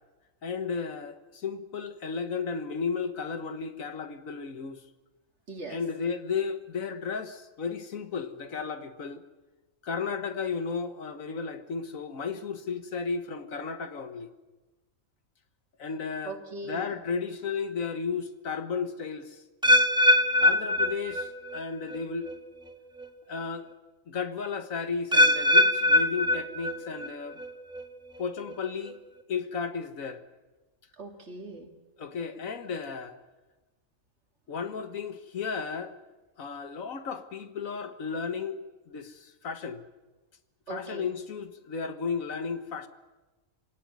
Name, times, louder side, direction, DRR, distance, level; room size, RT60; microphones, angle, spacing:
voice 1, 0.4-4.8 5.7-9.2 9.8-14.3 15.8-16.3 16.7-19.4 20.4-22.3 23.3-23.7 24.1-27.4 28.2-29.0 29.3-30.2 32.0-33.2 34.5-36.0 36.4-38.6 38.9-39.8 40.7-42.9, left 5 dB, 80° left, 9 dB, 1.7 m, -34 dB
voice 2, 5.5-5.8 16.2-17.0 31.0-31.7 40.7-41.1, right 2 dB, 55° right, 2 dB, 3.1 m, -40 dB
sound 1, 19.6-21.6 21.9-22.3 23.0-23.1 25.1-27.1 27.4-27.8 28.5-28.6, left 1 dB, 5° right, 1.5 m, -22 dB
26.0 x 18.0 x 9.4 m, 1.2 s
omnidirectional pair, 1.4 m